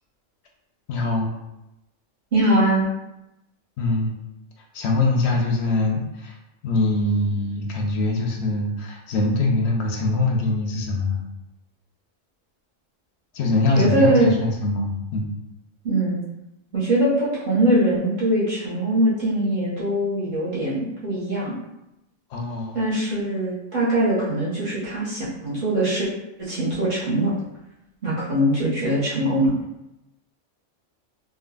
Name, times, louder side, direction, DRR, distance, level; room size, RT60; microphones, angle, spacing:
voice 1, 0.9-1.3 3.8-4.1 4.7-6.4 6.6-11.2 13.3-15.3 22.3-22.8, left 2 dB, 65° left, 0 dB, 0.7 m, -23 dB
voice 2, 2.3-2.9 13.8-14.3 15.8-16.2 16.7-21.5 22.7-26.1 26.4-27.3 28.0-29.5, right 1 dB, 45° right, -8 dB, 0.8 m, -22 dB
3.4 x 2.1 x 2.2 m, 0.91 s
omnidirectional pair, 1.3 m